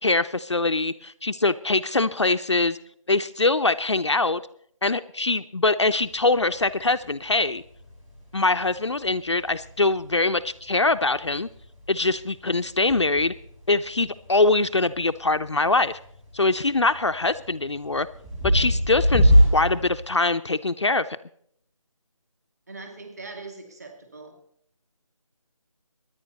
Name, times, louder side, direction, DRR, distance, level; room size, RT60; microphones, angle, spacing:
voice 1, 0.0-2.8 3.1-4.4 4.8-7.6 8.3-11.5 11.9-13.3 13.7-16.0 16.3-18.1 18.4-21.1, left 3 dB, 55° left, 10 dB, 0.6 m, -23 dB
sound 1, 5.9-20.1, equal, 5° right, 1.7 m, -27 dB
voice 2, 22.7-24.3, right 3 dB, 30° right, 4 dB, 2.4 m, -41 dB
23.0 x 10.0 x 4.0 m, 0.67 s
figure-of-eight pair, 175°, 18 cm